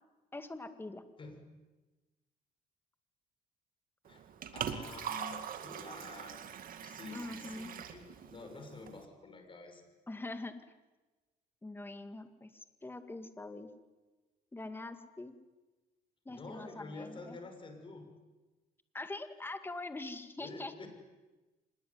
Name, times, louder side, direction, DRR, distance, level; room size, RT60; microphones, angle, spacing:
voice 1, 0.3-1.0 7.1-7.7 10.1-10.6 11.6-13.7 14.5-15.4 16.3-17.4 18.9-20.7, left 2 dB, 15° left, 9 dB, 2.2 m, -43 dB
Liquid, 4.0-9.1, right 9 dB, 55° right, 2.3 m, -43 dB
voice 2, 4.5-9.8 16.3-18.1 20.4-20.9, left 3 dB, 30° left, 6 dB, 6.1 m, -49 dB
25.5 x 20.5 x 9.7 m, 1.2 s
cardioid pair, 110°, 17 cm